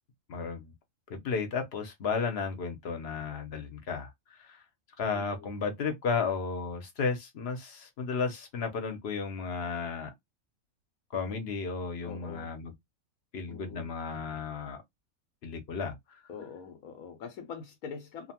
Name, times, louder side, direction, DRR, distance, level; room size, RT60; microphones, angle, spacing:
voice 1, 0.3-0.7 1.1-4.1 4.4-4.6 5.0-10.1 11.1-12.7 13.3-14.8 15.4-15.9, left 5 dB, 55° left, 0.9 m, -33 dB
voice 2, 5.1-5.5 12.0-12.6 13.5-13.9 16.3-18.3, left 6 dB, 90° left, 1.0 m, -44 dB
2.8 x 2.2 x 2.8 m
omnidirectional pair, 1.4 m